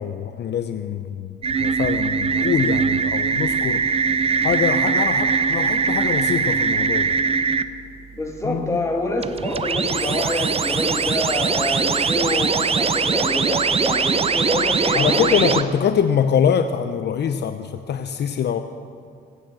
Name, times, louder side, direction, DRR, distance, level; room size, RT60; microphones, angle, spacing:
voice 1, 0.0-1.3 1.6-3.8 4.4-7.1 8.4-8.8 14.9-18.6, left 8 dB, 60° left, 9 dB, 0.7 m, -23 dB
sound 1, 1.4-7.6 9.2-15.6, right 5 dB, 30° right, 0.7 m, -21 dB
voice 2, 8.1-15.6, left 1 dB, 15° left, 1 dB, 2.7 m, -26 dB
20.0 x 9.2 x 7.7 m, 2.4 s
cardioid pair, 90°, 20 cm